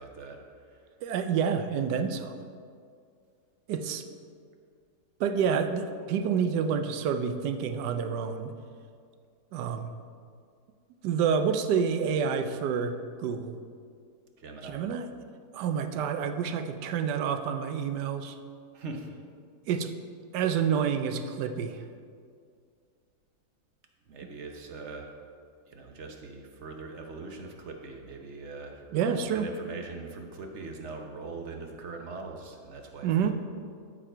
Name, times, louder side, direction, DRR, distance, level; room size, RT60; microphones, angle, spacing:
voice 1, 0.0-0.9 14.4-14.8 18.7-19.1 24.1-25.1 25.7-33.3, right 3 dB, 50° right, 3 dB, 1.0 m, -42 dB
voice 2, 1.0-2.4 3.7-4.0 5.2-8.5 9.5-9.9 11.0-13.6 14.6-15.1 15.5-18.4 19.7-19.9 20.3-21.8 28.9-29.5 33.0-33.3, right 7 dB, 85° right, 9 dB, 1.2 m, -28 dB
13.0 x 4.9 x 4.4 m, 2.3 s
omnidirectional pair, 1.8 m